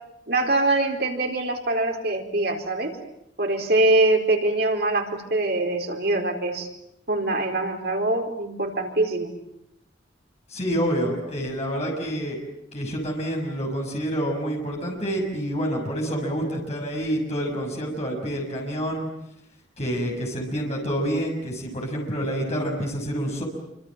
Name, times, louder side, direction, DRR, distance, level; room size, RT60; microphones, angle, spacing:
voice 1, 0.3-2.9 3.4-6.7 7.1-9.3, right 2 dB, 55° right, 2 dB, 4.4 m, -23 dB
voice 2, 10.5-12.4 12.7-19.1 19.8-23.4, equal, 35° left, 0 dB, 6.3 m, -28 dB
28.0 x 26.0 x 7.5 m, 0.84 s
head